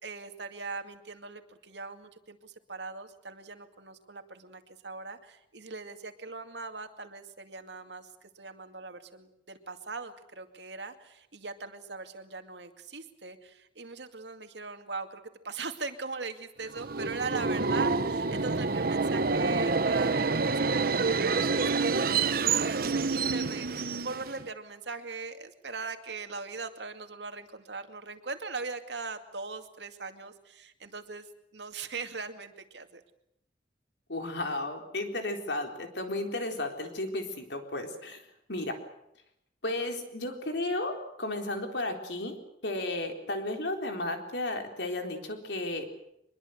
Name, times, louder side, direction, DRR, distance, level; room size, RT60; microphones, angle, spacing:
voice 1, 0.0-31.3 31.5-33.0, right 4 dB, 85° right, 7 dB, 2.3 m, -40 dB
Subway metro underground, 16.7-24.5, right 4 dB, 60° right, 1.0 m, -27 dB
voice 2, 34.1-38.2 38.5-38.8 39.6-42.4 42.6-45.9, left 2 dB, 80° left, 4 dB, 4.0 m, -33 dB
24.0 x 22.0 x 8.0 m, 0.78 s
head